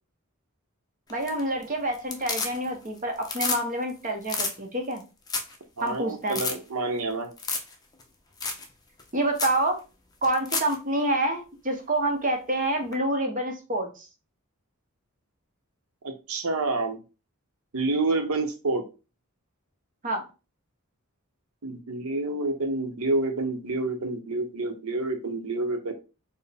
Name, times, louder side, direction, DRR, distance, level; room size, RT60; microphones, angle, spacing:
sound 1, 1.1-1.6 1.9-2.9 3.2-3.6 3.9-4.0 4.2-4.5 5.0-5.1 5.3-5.6 5.9-6.0 6.3-6.5 7.4-7.7 8.0-8.1 8.4-8.6 9.0-9.1 9.4-9.6 10.2-10.7 12.9-13.0, left 4 dB, 20° left, 0.5 m, -30 dB
voice 1, 1.1-5.0 5.8-6.4 9.1-9.8 10.2-14.1 20.0-20.2, right 1 dB, 40° right, 3 dB, 0.8 m, -27 dB
voice 2, 5.8-7.3 16.0-17.0 17.7-18.8 21.6-25.9, right 2 dB, 75° right, 5 dB, 0.7 m, -28 dB
4.3 x 2.1 x 3.3 m, 0.31 s
head